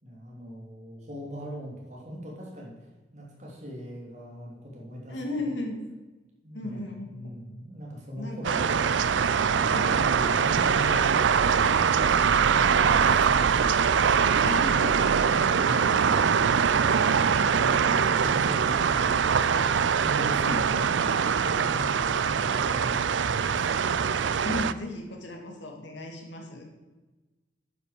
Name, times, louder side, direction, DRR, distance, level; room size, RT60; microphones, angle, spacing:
voice 1, 0.0-2.7 3.1-5.5 6.4-8.9 9.4-13.7 17.3-19.6 20.0-24.3, equal, 40° right, -3 dB, 3.2 m, -40 dB
voice 2, 5.1-5.8 6.5-7.3 8.2-8.6 9.7-9.9 14.4-16.5 20.4-20.6 24.4-26.7, left 1 dB, 75° left, 2 dB, 2.3 m, -36 dB
sound 1, 8.4-24.7, right 6 dB, 80° right, 0.4 m, -23 dB
9.2 x 8.2 x 6.8 m, 1.2 s
head